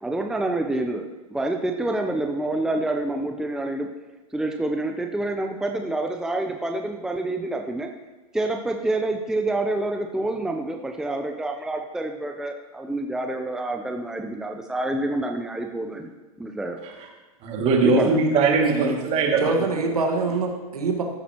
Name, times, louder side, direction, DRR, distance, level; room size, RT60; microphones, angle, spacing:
voice 1, 0.0-3.9 4.3-7.9 8.3-16.1 16.4-16.8 17.8-18.2, right 2 dB, 5° right, 3 dB, 0.7 m, -27 dB
voice 2, 17.4-19.5, right 3 dB, 35° right, 0 dB, 2.4 m, -21 dB
voice 3, 18.6-18.9 19.4-21.0, right 3 dB, 90° right, 2 dB, 1.7 m, -25 dB
14.5 x 8.2 x 3.0 m, 1.2 s
hypercardioid pair, 115°, 19 cm